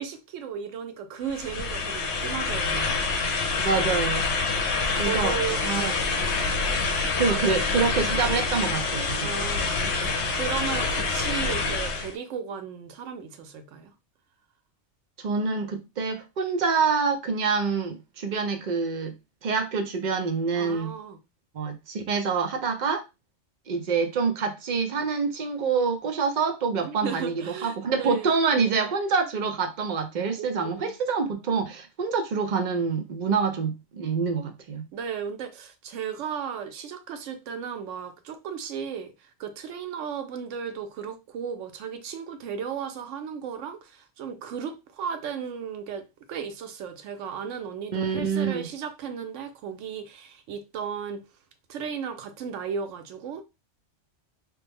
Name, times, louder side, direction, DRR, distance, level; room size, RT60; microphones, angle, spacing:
voice 1, 0.0-3.6 4.9-6.1 7.3-7.6 9.2-13.9 20.5-21.2 26.8-28.3 30.4-30.9 34.9-51.2 51.7-53.4, right 7 dB, 85° right, 0.9 m, -35 dB
sound 1, 1.3-12.1, left 4 dB, 70° left, 0.9 m, -26 dB
voice 2, 3.6-4.3 5.0-5.3 5.6-5.9 6.2-6.3 7.1-9.3 15.2-19.2 19.4-20.9 21.5-23.0 23.7-34.9 47.9-48.7, right 5 dB, 50° right, 0.6 m, -26 dB
3.1 x 2.0 x 3.4 m
omnidirectional pair, 1.2 m